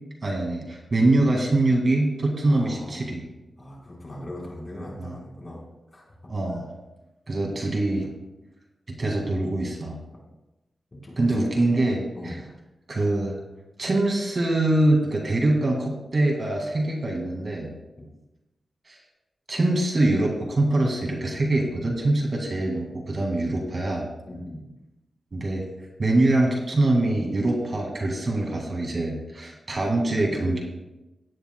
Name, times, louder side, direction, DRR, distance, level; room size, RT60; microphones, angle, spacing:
voice 1, 0.2-3.2 5.0-5.1 6.3-6.7 7.3-8.1 8.9-10.0 11.2-12.4 12.9-13.3 13.8-17.7 18.9-19.0 19.5-24.1 25.3-25.6 26.0-30.6, right 2 dB, 40° right, 0 dB, 2.0 m, -24 dB
voice 2, 2.5-3.0 3.6-5.6 5.9-6.3 10.1-10.2 11.0-11.5 12.1-12.5 24.3-24.7, left 1 dB, 30° left, -4 dB, 4.1 m, -39 dB
16.5 x 10.0 x 2.2 m, 1.0 s
wide cardioid pair, 110°, 0 cm